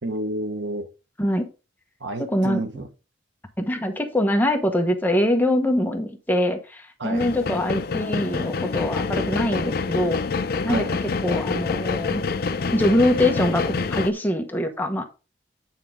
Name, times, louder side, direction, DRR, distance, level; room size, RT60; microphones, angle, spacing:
voice 1, 0.0-0.9 2.0-2.9 7.0-7.3 10.7-10.9, right 1 dB, 85° right, 1.2 m, -29 dB
voice 2, 1.2-1.5 2.2-2.6 3.6-10.2 10.6-12.2 12.7-15.0, left 1 dB, 10° left, 1.0 m, -23 dB
sound 1, 7.2-14.1, left 4 dB, 55° left, 0.5 m, -26 dB
9.1 x 4.5 x 3.7 m
head